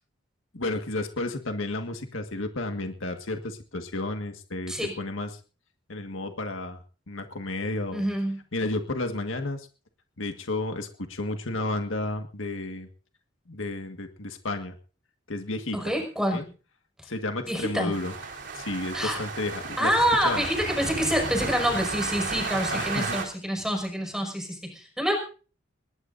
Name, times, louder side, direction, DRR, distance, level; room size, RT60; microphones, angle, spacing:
voice 1, 0.5-5.3 5.9-6.8 7.1-8.0 8.5-9.7 10.2-12.9 13.5-14.8 15.3-15.9 16.3-16.4 17.1-18.1 18.6-19.9 20.2-20.4 22.7-23.2, left 2 dB, 80° left, 5 dB, 1.8 m, -32 dB
voice 2, 7.9-8.4 15.7-16.5 17.5-17.9 18.9-19.2 19.8-25.2, equal, 5° right, 2 dB, 5.6 m, -27 dB
sound 1, 17.9-23.3, right 3 dB, 60° right, 3.6 m, -33 dB
21.0 x 20.0 x 2.7 m, 0.37 s
head